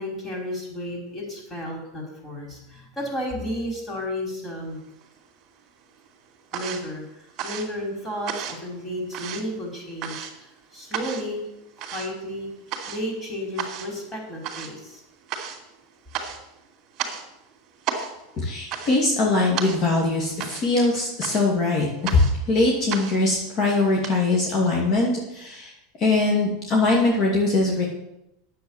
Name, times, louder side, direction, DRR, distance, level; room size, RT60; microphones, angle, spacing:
voice 1, 0.0-4.8 6.5-7.0 7.4-10.3 10.7-11.4 11.8-12.5 12.9-15.0, equal, 15° left, -1 dB, 4.8 m, -32 dB
sound 1, 4.7-5.5 5.8-24.1, right 8 dB, 45° right, 2.6 m, -35 dB
voice 2, 18.4-22.2 22.5-25.7 26.0-27.9, left 3 dB, 45° left, -2 dB, 2.7 m, -22 dB
9.9 x 8.0 x 7.3 m, 0.86 s
supercardioid pair, 125°, 0 cm